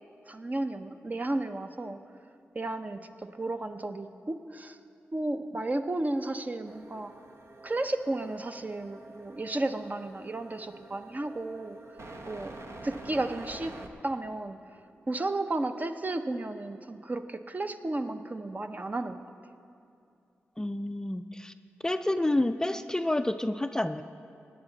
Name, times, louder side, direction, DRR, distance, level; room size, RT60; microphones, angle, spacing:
voice 1, 0.3-2.0 2.5-4.8 5.1-7.1 7.6-11.8 12.3-13.8 14.0-14.6 15.1-19.2, right 2 dB, 35° right, 8 dB, 0.7 m, -33 dB
sound 1, 6.7-13.9, right 2 dB, 65° right, 1.0 m, -47 dB
voice 2, 20.6-21.5 21.8-24.0, left 1 dB, 15° left, 9 dB, 0.4 m, -29 dB
17.5 x 9.9 x 3.9 m, 2.5 s
cardioid pair, 50°, 5 cm